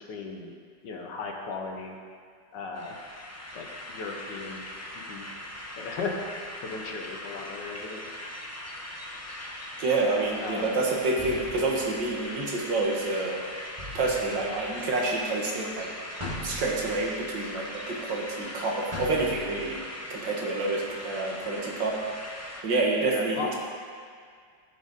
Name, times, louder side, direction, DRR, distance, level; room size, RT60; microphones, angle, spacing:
voice 1, 0.1-0.5 0.8-2.0 2.5-3.0 3.5-4.6 5.1-5.4 5.8-6.1 6.6-8.1 10.4-10.8 23.0-23.5, left 4 dB, 70° left, 2 dB, 1.6 m, -36 dB
sound 1, 2.7-22.6, left 1 dB, 25° left, 0.3 m, -40 dB
voice 2, 9.8-13.4 13.9-15.9 16.4-19.8 20.1-22.0 22.6-23.5, right 3 dB, 75° right, -2 dB, 2.0 m, -28 dB
sound 2, 10.2-10.5 11.2-12.6 13.8-15.2 16.2-17.7 18.9-19.8, left 1 dB, 15° right, 1.7 m, -41 dB
15.0 x 5.2 x 4.1 m, 2.1 s
omnidirectional pair, 2.0 m